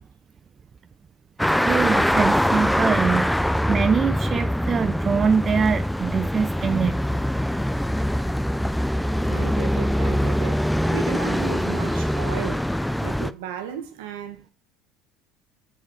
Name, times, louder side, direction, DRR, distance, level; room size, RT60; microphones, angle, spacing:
sound 1, 1.4-13.3, equal, ahead, 0.6 m, -23 dB
voice 1, 1.6-3.3 3.7-7.0, right 6 dB, 35° right, 0.7 m, -23 dB
voice 2, 9.3-12.7 13.0-14.5, right 9 dB, 80° right, 1.7 m, -35 dB
13.0 x 5.0 x 4.9 m
hypercardioid pair, 80°, 0 cm